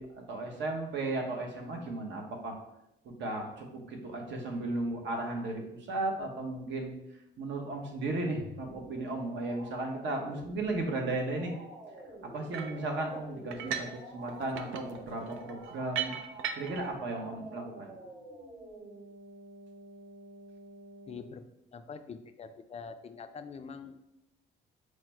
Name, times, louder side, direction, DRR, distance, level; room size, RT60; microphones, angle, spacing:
voice 1, 0.0-2.6 3.0-6.9 7.4-11.5 12.3-16.2 16.5-17.9, right 2 dB, 65° right, 2 dB, 0.9 m, -35 dB
sound 1, 8.4-21.2, right 1 dB, 45° right, 1.5 m, -49 dB
sound 2, 12.5-12.8 13.5-14.0 14.3-16.9, right 8 dB, 80° right, 0.4 m, -37 dB
voice 2, 21.1-21.4 21.7-24.1, left 5 dB, 30° left, 8 dB, 0.4 m, -45 dB
4.8 x 2.1 x 4.4 m, 0.86 s
cardioid pair, 90°, 20 cm